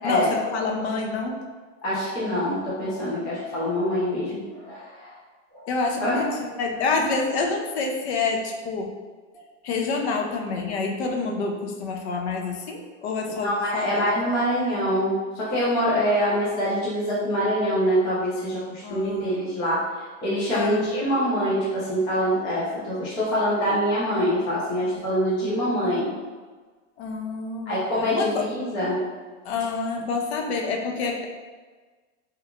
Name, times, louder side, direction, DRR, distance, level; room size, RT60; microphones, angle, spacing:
voice 1, 0.0-1.4 5.7-8.9 9.6-14.0 18.8-19.4 20.5-20.9 27.0-27.8 28.1-28.4 29.4-31.3, left 4 dB, 55° left, 2 dB, 0.6 m, -27 dB
voice 2, 1.8-5.1 5.5-5.7 6.0-6.2 6.7-6.8 13.4-19.8 20.2-26.1 27.7-29.0, equal, 15° left, -8 dB, 0.3 m, -25 dB
2.9 x 2.2 x 3.5 m, 1.4 s
supercardioid pair, 155°, 39 cm